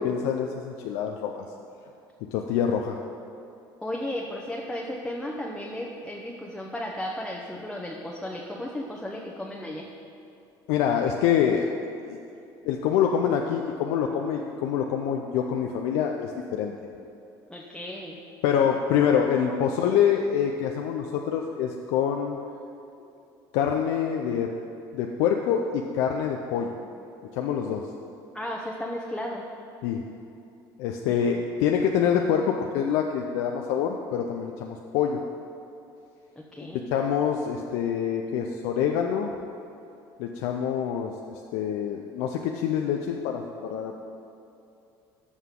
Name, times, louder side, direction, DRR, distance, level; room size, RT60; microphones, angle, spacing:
voice 1, 0.0-1.4 2.3-3.0 10.7-11.7 12.1-12.2 12.6-16.7 18.4-22.4 23.5-24.5 24.9-26.8 27.3-27.9 29.8-30.0 30.8-35.2 36.7-39.3 40.2-41.1 41.5-44.0, left 8 dB, 80° left, 2 dB, 0.5 m, -26 dB
voice 2, 3.8-9.9 17.5-18.2 19.5-19.6 28.3-29.4 31.3-31.4 36.5-36.8, left 1 dB, 5° left, -2 dB, 0.9 m, -34 dB
14.0 x 5.6 x 3.7 m, 2.7 s
supercardioid pair, 95°, 10 cm